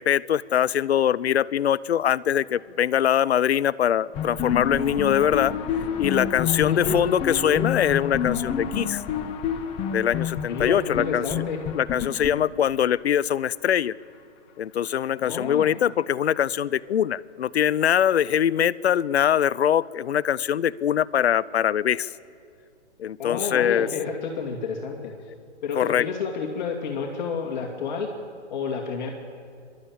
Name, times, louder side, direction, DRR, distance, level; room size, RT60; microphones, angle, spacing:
voice 1, 0.0-5.5 6.0-9.0 9.9-11.2 11.7-13.9 14.6-22.1 23.0-23.9 25.8-26.1, left 10 dB, 65° left, 20 dB, 0.6 m, -23 dB
sound 1, 4.1-13.0, left 7 dB, 15° left, 0.9 m, -28 dB
voice 2, 6.6-6.9 10.5-11.6 15.2-15.7 23.2-25.3 25.6-28.1 28.5-29.1, left 5 dB, 40° left, 0 dB, 2.3 m, -30 dB
25.0 x 12.5 x 8.8 m, 2.3 s
hypercardioid pair, 145°, 35 cm